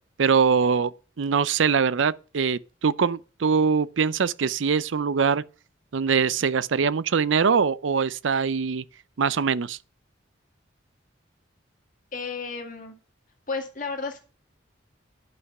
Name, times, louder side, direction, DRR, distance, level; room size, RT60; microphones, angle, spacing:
voice 1, 0.2-0.9 1.2-5.4 5.9-8.8 9.2-9.8, right 6 dB, 80° right, 0.5 m, -23 dB
voice 2, 12.1-13.0 13.5-14.2, left 4 dB, 45° left, 2.1 m, -32 dB
11.0 x 5.9 x 5.4 m
head